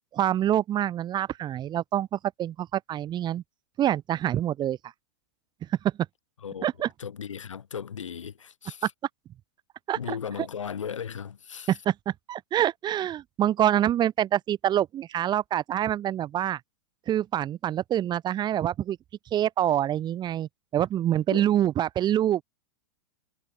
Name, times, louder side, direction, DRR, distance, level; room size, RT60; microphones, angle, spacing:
voice 1, 0.1-3.4 3.8-4.9 6.6-6.9 9.9-10.0 11.7-16.6 17.1-19.0 19.3-22.4, right 11 dB, 25° right, 1.0 m, -26 dB
voice 2, 7.0-8.9 9.9-11.7 21.3-21.4, left 7 dB, 85° left, 4.0 m, -36 dB
hypercardioid pair, 110°, 16 cm